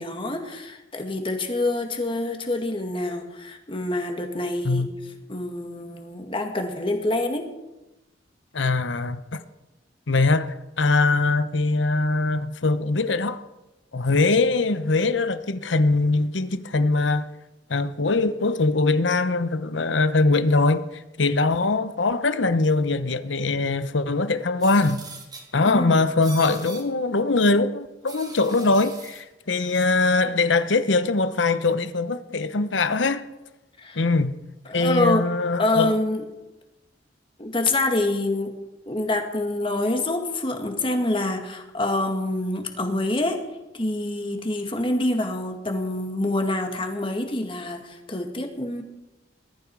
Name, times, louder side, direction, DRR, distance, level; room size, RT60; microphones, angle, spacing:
voice 1, 0.0-4.9 5.3-7.5 25.7-26.0 33.8-34.0 34.7-35.3 35.6-36.2 37.4-38.5 38.9-43.4 43.7-48.8, left 2 dB, 30° left, 2.1 m, -26 dB
voice 2, 8.5-9.4 10.1-13.4 13.9-17.3 17.7-20.8 21.2-25.0 25.5-33.2 34.0-34.3 34.7-36.0, left 3 dB, 80° left, 0.9 m, -22 dB
sound 1, 24.6-25.5 26.2-26.8 28.1-29.2 29.7-29.8, right 3 dB, 20° right, 3.0 m, -41 dB
21.0 x 13.5 x 4.8 m
head